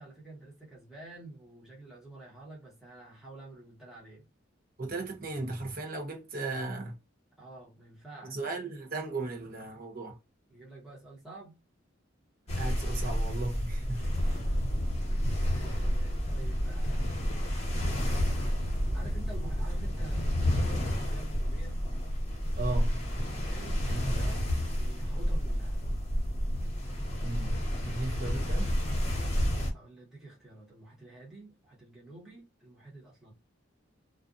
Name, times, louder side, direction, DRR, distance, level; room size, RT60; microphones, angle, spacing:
voice 1, 0.0-4.2 7.4-8.4 10.5-11.6 13.9-14.4 15.3-17.0 18.9-21.8 23.5-25.8 29.7-33.3, right 2 dB, ahead, 1.1 m, -49 dB
voice 2, 4.8-7.0 8.2-10.2 12.6-14.1 22.6-23.0 23.9-24.3 27.2-28.7, right 2 dB, 50° right, 0.7 m, -36 dB
sound 1, 12.5-29.7, equal, 35° left, 1.0 m, -30 dB
2.5 x 2.5 x 2.4 m
head